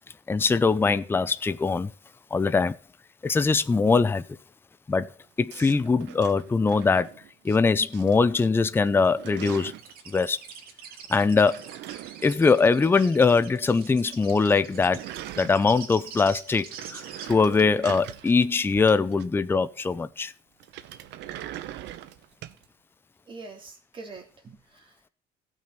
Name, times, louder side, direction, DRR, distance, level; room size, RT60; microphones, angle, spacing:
voice 1, 0.3-1.9 2.3-2.8 3.2-4.3 4.9-5.1 5.4-7.1 7.4-9.7 10.1-10.4 11.1-11.6 12.2-15.0 15.4-17.0 17.3-20.3, left 4 dB, 10° left, 0.5 m, -22 dB
sound 1, 5.5-7.6 7.9-8.5 8.7-9.9 11.2-13.4 13.6-13.7 14.0-14.1 14.3-16.0 16.4-19.5 20.6-22.6, right 13 dB, 70° right, 0.9 m, -42 dB
sound 2, 9.8-17.3, right 7 dB, 50° right, 2.5 m, -44 dB
voice 2, 23.3-25.1, right 3 dB, 25° right, 3.4 m, -45 dB
16.5 x 6.3 x 4.2 m
cardioid pair, 135°, 19 cm